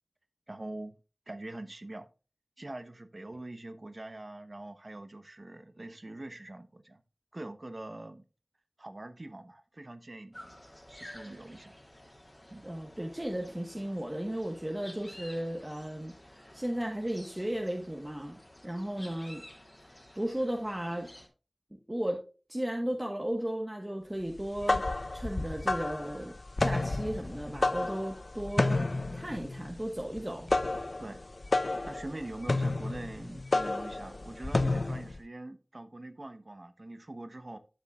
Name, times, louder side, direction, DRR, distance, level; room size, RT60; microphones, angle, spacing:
voice 1, 0.5-1.0 1.3-2.1 2.6-7.0 7.3-8.2 8.8-10.5 10.9-11.8 12.5-12.7 31.0-31.2 31.8-37.6, right 2 dB, 60° right, 1.0 m, -43 dB
sound 1, 10.3-21.3, left 1 dB, 25° left, 2.5 m, -52 dB
voice 2, 12.6-19.4 19.9-21.1 21.9-22.2 22.5-24.8 25.1-26.3 26.6-30.5, right 1 dB, 25° right, 1.3 m, -35 dB
sound 2, 24.4-35.2, left 2 dB, 75° left, 0.5 m, -31 dB
12.0 x 7.2 x 2.4 m
wide cardioid pair, 40°, 0 cm